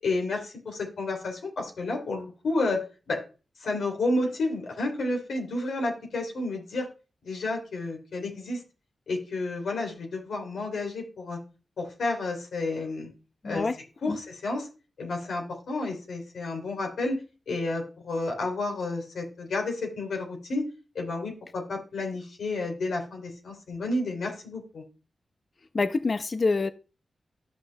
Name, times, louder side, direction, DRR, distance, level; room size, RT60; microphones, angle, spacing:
voice 1, 0.0-3.2 3.6-6.9 7.2-8.6 9.1-11.4 11.8-13.1 13.4-13.7 14.0-14.7 15.0-17.2 17.5-20.6 20.9-24.8, left 2 dB, 85° left, 2.8 m, -31 dB
voice 2, 13.4-13.8 14.1-14.2 25.7-26.7, left 3 dB, 50° left, 0.6 m, -26 dB
13.0 x 6.1 x 2.2 m
cardioid pair, 55°, 0 cm